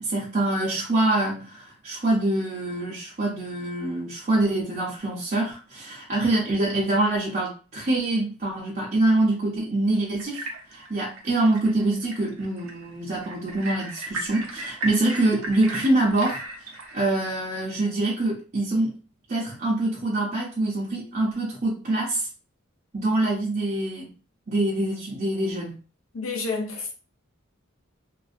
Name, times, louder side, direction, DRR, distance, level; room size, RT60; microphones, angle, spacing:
voice 1, 0.0-19.0 19.3-22.3 22.9-24.1 24.5-25.8, right 2 dB, 35° right, 0.5 m, -25 dB
sound 1, 10.2-17.1, right 2 dB, 85° right, 0.6 m, -36 dB
voice 2, 26.1-27.0, left 3 dB, 80° left, 0.7 m, -29 dB
2.4 x 2.1 x 2.4 m
head